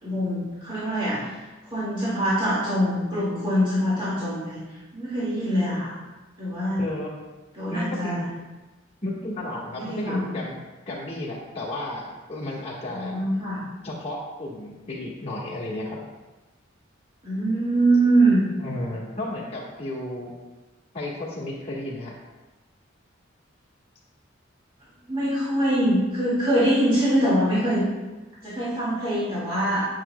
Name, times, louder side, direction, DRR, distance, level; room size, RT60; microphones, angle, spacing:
voice 1, 0.0-1.3 1.7-4.6 4.9-5.9 6.4-6.9 7.5-8.3 9.7-10.4 12.9-13.6 17.2-18.4 25.1-27.8 28.4-29.8, right 1 dB, 25° right, -11 dB, 2.1 m, -23 dB
voice 2, 6.8-7.2 7.7-8.3 9.0-10.6 10.9-13.1 13.8-16.0 18.6-20.3 20.9-22.1, left 1 dB, 30° left, -5 dB, 1.5 m, -33 dB
8.9 x 6.0 x 2.3 m, 1.2 s
head